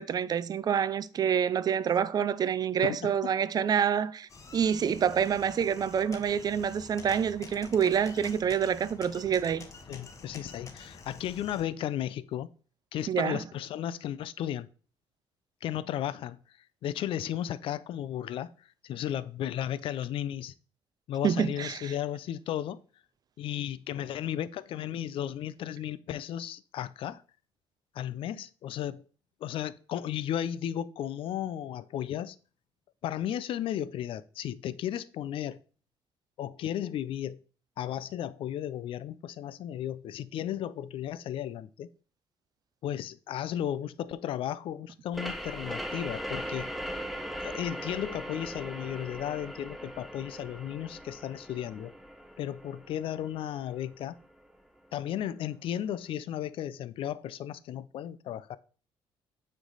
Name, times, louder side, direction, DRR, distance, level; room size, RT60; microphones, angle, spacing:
voice 1, 0.0-9.7 13.1-13.4 21.2-21.9, right 8 dB, 45° right, 0.4 m, -27 dB
voice 2, 2.8-3.1 9.9-12.5 12.9-14.7 15.6-16.4 16.8-20.5 21.1-22.8 23.4-27.2 27.9-29.0 29.4-32.4 33.0-35.6 36.4-37.4 37.8-41.9 42.8-46.7 47.4-51.9 52.4-54.2 54.9-58.6, left 11 dB, 65° left, 0.4 m, -34 dB
sound 1, 4.3-11.6, left 3 dB, 35° left, 1.0 m, -48 dB
sound 2, 45.1-54.5, equal, ahead, 1.3 m, -40 dB
9.2 x 3.3 x 4.0 m
cardioid pair, 95°, 10 cm